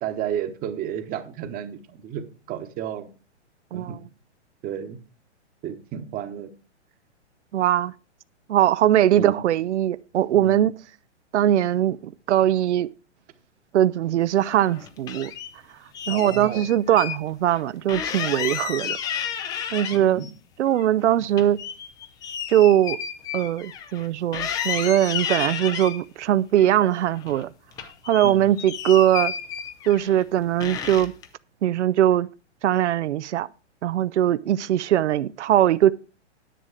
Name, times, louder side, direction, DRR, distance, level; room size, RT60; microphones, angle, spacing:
voice 1, 0.0-3.1 3.7-4.0 4.6-5.0 5.6-6.5 9.1-9.4 10.3-10.7 16.1-16.6 19.9-20.3 28.2-28.6, right 9 dB, 25° right, 1.0 m, -32 dB
voice 2, 7.5-7.9 8.5-10.7 11.3-12.9 13.7-15.3 16.1-19.0 19.7-20.2 20.6-21.6 22.5-23.0 23.3-27.5 28.1-29.3 29.9-31.1 31.6-32.3 32.6-33.5 33.8-35.9, right 12 dB, 75° right, 0.5 m, -21 dB
sound 1, 14.5-15.5 15.9-17.2 17.5-17.6 17.9-20.3 20.7-24.1 24.3-26.0 26.6-27.4 27.7-30.2 30.6-31.3, left 8 dB, 10° left, 0.4 m, -32 dB
10.0 x 7.5 x 4.8 m
hypercardioid pair, 120°, 35 cm